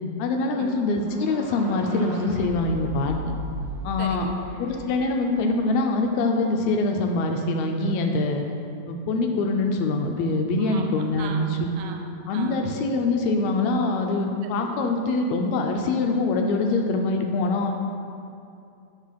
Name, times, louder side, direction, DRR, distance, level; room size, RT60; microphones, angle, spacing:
voice 1, 0.2-3.2 3.8-4.3 4.6-8.4 8.9-11.7 12.3-17.7, left 2 dB, 80° left, 3 dB, 1.8 m, -24 dB
sound 1, 0.9-5.7, left 1 dB, 35° right, 1.3 m, -37 dB
voice 2, 4.0-4.4 10.6-11.5 11.8-12.7 14.6-14.8 17.7-17.8, right 6 dB, 80° right, 4 dB, 1.9 m, -37 dB
9.7 x 3.7 x 5.8 m, 2.6 s
omnidirectional pair, 3.4 m